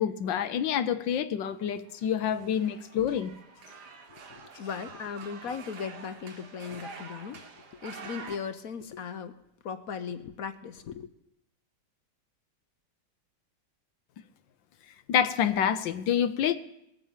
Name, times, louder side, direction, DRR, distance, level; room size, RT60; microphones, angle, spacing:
voice 1, 0.0-3.3 15.1-16.6, left 9 dB, 80° left, 12 dB, 1.5 m, -27 dB
sound 1, 1.9-8.4, right 5 dB, 65° right, 2.0 m, -47 dB
voice 2, 4.1-9.4 9.6-11.1, left 6 dB, 60° left, 11 dB, 1.0 m, -38 dB
20.0 x 9.3 x 7.3 m, 0.83 s
omnidirectional pair, 2.0 m